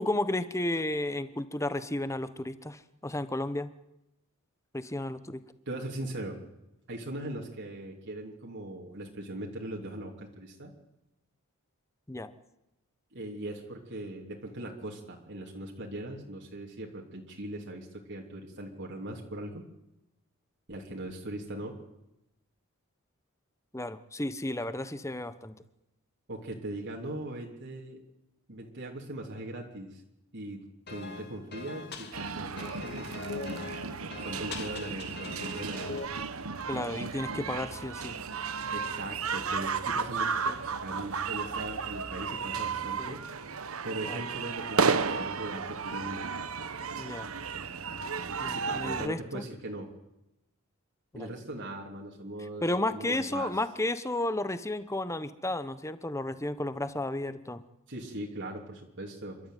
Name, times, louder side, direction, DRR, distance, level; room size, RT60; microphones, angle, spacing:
voice 1, 0.0-3.7 4.7-5.4 12.1-12.3 23.7-25.5 36.7-38.2 40.5-40.6 43.0-43.2 44.1-44.2 47.0-47.3 48.4-49.4 51.1-51.3 52.6-57.6, left 1 dB, 15° left, 12 dB, 1.1 m, -33 dB
voice 2, 5.7-6.4 6.9-10.7 13.1-19.6 20.7-21.7 26.3-28.0 28.5-30.0 30.3-30.6 30.9-33.6 34.2-36.0 38.7-43.2 43.8-46.3 48.4-49.9 51.1-52.6 52.9-53.5 57.9-59.4, right 1 dB, 60° right, 0 dB, 3.2 m, -40 dB
sound 1, 30.9-36.1, left 3 dB, 50° left, 2.5 m, -41 dB
sound 2, 32.1-49.1, right 5 dB, 90° right, 1.2 m, -33 dB
28.5 x 13.0 x 9.3 m, 0.91 s
head